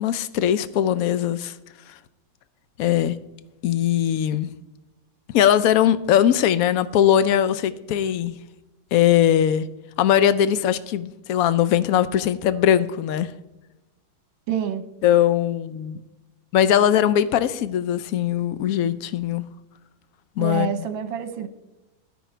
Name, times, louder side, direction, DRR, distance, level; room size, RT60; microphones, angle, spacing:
voice 1, 0.0-1.6 1.9-2.0 2.8-3.2 3.6-4.5 5.3-8.3 8.9-9.7 10.0-13.3 15.0-16.0 16.5-19.4 20.4-20.7, left 10 dB, 80° left, 0.7 m, -20 dB
voice 2, 14.5-14.8 20.4-21.5, right 8 dB, 75° right, 1.7 m, -27 dB
14.0 x 9.4 x 4.5 m
omnidirectional pair, 2.2 m